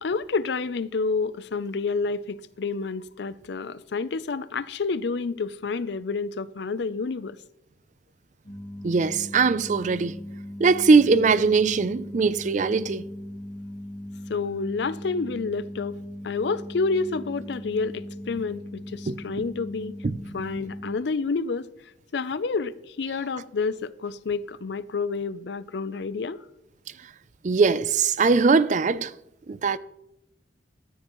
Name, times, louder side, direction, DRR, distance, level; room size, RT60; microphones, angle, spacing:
voice 1, 0.0-7.4 14.3-19.9 20.3-21.7 22.1-26.4, left 4 dB, 65° left, 0.5 m, -29 dB
sound 1, 8.4-20.9, left 1 dB, 40° left, 3.2 m, -39 dB
voice 2, 8.8-10.2 10.6-13.0 19.1-19.2 20.0-20.1 27.4-29.1 29.5-29.8, right 4 dB, 40° right, 0.4 m, -21 dB
14.0 x 12.5 x 3.1 m
head